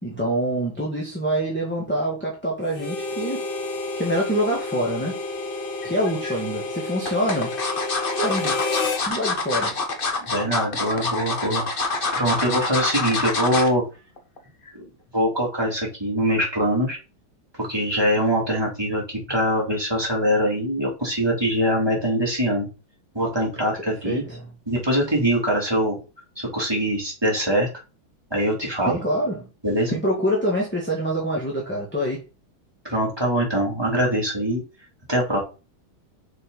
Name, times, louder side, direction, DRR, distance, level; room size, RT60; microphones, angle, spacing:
voice 1, 0.0-3.4 4.0-5.2 5.8-7.5 8.2-8.6 9.1-9.7 24.0-24.5 28.8-29.5 29.9-32.2, equal, 5° left, 1.5 m, -25 dB
Harmonica, 2.7-9.1, left 3 dB, 80° left, 2.1 m, -30 dB
sound 1, 5.8-6.3 7.0-13.8 14.2-14.4 14.7-14.8, left 3 dB, 35° left, 0.9 m, -26 dB
voice 2, 10.2-11.6 12.1-13.8 14.7-14.8 15.1-17.0 17.6-22.7 23.1-24.2 24.7-26.0 26.4-27.7 28.3-29.0 29.6-30.0 32.8-34.6 35.1-35.4, equal, 10° right, 2.6 m, -23 dB
6.5 x 4.8 x 3.9 m
omnidirectional pair, 2.3 m